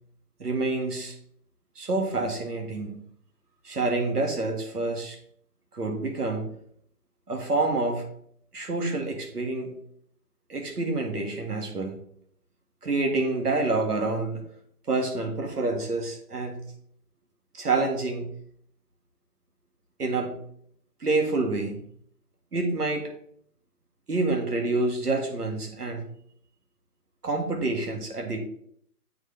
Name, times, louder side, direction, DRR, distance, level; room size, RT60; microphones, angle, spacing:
voice 1, 0.4-1.2 1.8-3.0 3.6-5.2 5.7-6.5 7.3-8.1 8.5-9.7 10.5-12.0 12.8-14.4 14.9-16.6 17.5-18.3 20.0-20.3 21.0-21.9 22.5-23.1 24.1-26.0 27.2-28.4, right 3 dB, 80° right, 2 dB, 2.0 m, -27 dB
8.2 x 4.2 x 3.3 m, 0.65 s
hypercardioid pair, 170°, 46 cm